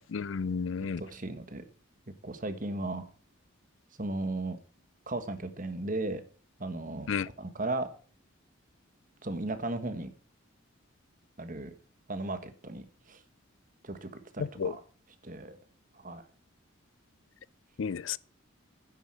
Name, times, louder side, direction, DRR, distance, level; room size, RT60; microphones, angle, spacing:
voice 1, 0.1-1.0 7.1-7.3 14.6-14.7 17.8-18.2, left 6 dB, 70° left, 0.5 m, -31 dB
voice 2, 1.0-1.6 2.2-3.0 4.0-4.6 5.1-6.2 6.6-7.9 9.2-10.1 11.4-11.7 12.1-13.2 13.8-14.1 14.3-14.8 15.2-15.6 16.0-16.2, right 2 dB, 40° right, 1.5 m, -35 dB
10.0 x 8.2 x 7.6 m
head